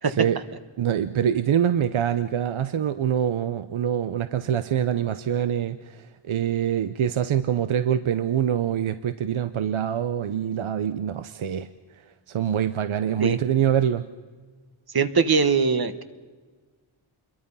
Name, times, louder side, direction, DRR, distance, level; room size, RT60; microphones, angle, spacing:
voice 1, 0.8-11.7 12.3-14.1, right 9 dB, 70° right, 11 dB, 0.8 m, -25 dB
voice 2, 14.9-16.0, right 5 dB, 45° right, 10 dB, 1.3 m, -21 dB
27.5 x 22.5 x 5.5 m, 1.4 s
wide cardioid pair, 155°, 49 cm